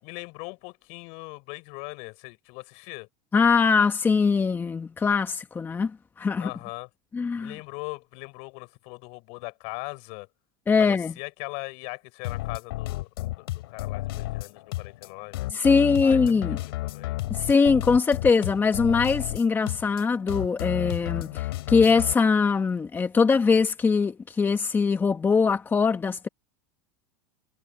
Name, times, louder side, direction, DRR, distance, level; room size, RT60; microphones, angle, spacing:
voice 1, 0.0-3.1 6.4-6.9 7.4-10.3 10.8-13.1 13.4-15.5 16.0-16.2 16.5-17.2, left 30 dB, 55° left, 6.4 m, -40 dB
voice 2, 3.3-6.5 7.1-7.5 10.7-11.1 15.5-16.6 17.3-26.3, left 5 dB, 15° left, 1.3 m, -22 dB
sound 1, 12.2-22.1, left 17 dB, 80° left, 3.8 m, -32 dB
supercardioid pair, 125°, 13 cm